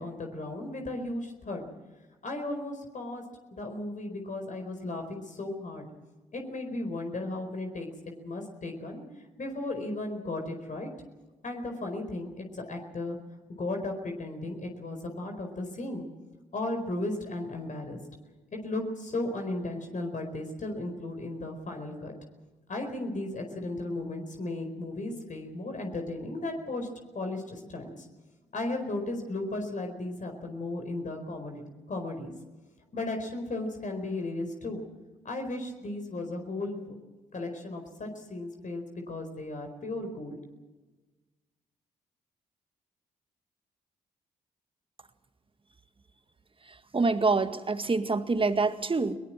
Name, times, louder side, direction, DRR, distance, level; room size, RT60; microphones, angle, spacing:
voice 1, 0.0-1.7 2.2-3.2 3.5-5.8 6.3-7.9 8.2-9.0 9.4-10.9 11.4-13.2 13.6-16.0 16.5-18.0 18.6-22.1 22.7-26.9 27.1-28.1 28.5-31.6 31.9-32.3 32.9-34.8 35.2-36.9 37.3-40.4, left 2 dB, 45° left, 4 dB, 4.5 m, -35 dB
voice 2, 46.9-49.2, right 3 dB, 30° right, 10 dB, 2.0 m, -26 dB
21.5 x 19.5 x 7.6 m, 1.2 s
hypercardioid pair, 45°, 17 cm